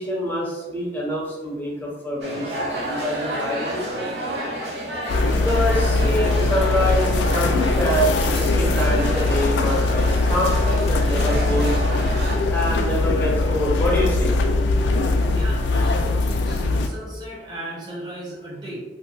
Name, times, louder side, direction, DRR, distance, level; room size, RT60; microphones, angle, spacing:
voice 1, 0.0-3.9 5.4-11.8 12.5-14.3, equal, 10° left, -5 dB, 0.6 m, -26 dB
sound 1, 2.2-12.4, right 1 dB, 75° right, 0.7 m, -30 dB
sound 2, 5.1-16.9, left 2 dB, 85° left, 0.3 m, -21 dB
voice 2, 15.3-18.8, right 1 dB, 25° right, -5 dB, 0.9 m, -36 dB
2.8 x 2.1 x 3.8 m, 1.2 s
head